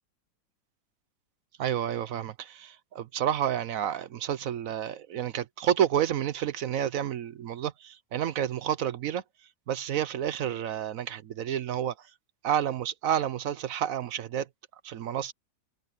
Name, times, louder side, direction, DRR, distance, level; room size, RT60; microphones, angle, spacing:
voice 1, 1.6-9.2 9.7-11.9 12.4-14.5 14.8-15.3, right 10 dB, 65° right, 1.0 m, -30 dB
omnidirectional pair, 1.8 m